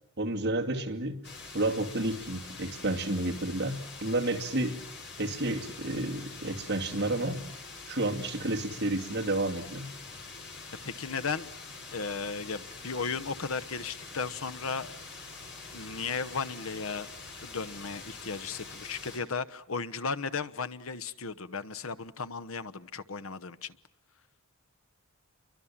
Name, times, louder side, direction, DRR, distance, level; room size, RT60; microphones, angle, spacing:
voice 1, 0.2-1.2 1.5-4.8 5.2-7.4 7.9-9.9, right 2 dB, 50° right, 1 dB, 2.6 m, -31 dB
sound 1, 1.2-19.2, left 4 dB, 55° left, 5.9 m, -45 dB
voice 2, 10.8-11.5 11.9-15.0 15.7-17.1 17.4-23.7, left 5 dB, 70° left, 11 dB, 1.1 m, -35 dB
29.5 x 24.0 x 7.4 m, 0.73 s
head